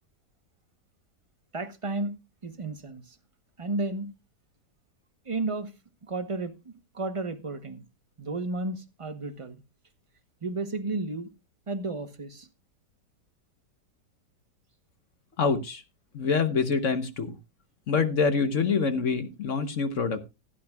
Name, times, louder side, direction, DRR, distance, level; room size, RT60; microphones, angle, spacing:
voice 1, 1.5-2.1 2.4-3.2 3.6-4.1 5.2-5.7 6.1-7.8 8.2-9.6 10.4-11.3 11.7-12.5, right 2 dB, 30° right, 0.5 m, -32 dB
voice 2, 15.4-15.8 16.1-17.3 17.9-20.3, left 5 dB, 50° left, 1.1 m, -26 dB
16.5 x 10.0 x 2.3 m
omnidirectional pair, 1.8 m